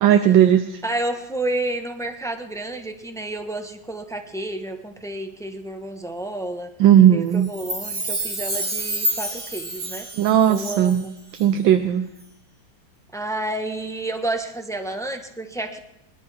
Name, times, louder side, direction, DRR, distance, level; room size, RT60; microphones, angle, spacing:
voice 1, 0.0-0.8 6.8-7.5 10.2-11.0 11.3-12.1, right 10 dB, 80° right, 7 dB, 1.4 m, -16 dB
voice 2, 0.8-6.7 7.1-10.1 10.5-11.1 13.1-15.8, right 2 dB, 5° left, 5 dB, 0.6 m, -30 dB
Chime, 7.4-11.1 11.3-11.4, right 1 dB, 40° right, 2.2 m, -29 dB
23.0 x 11.0 x 3.4 m, 0.86 s
omnidirectional pair, 2.1 m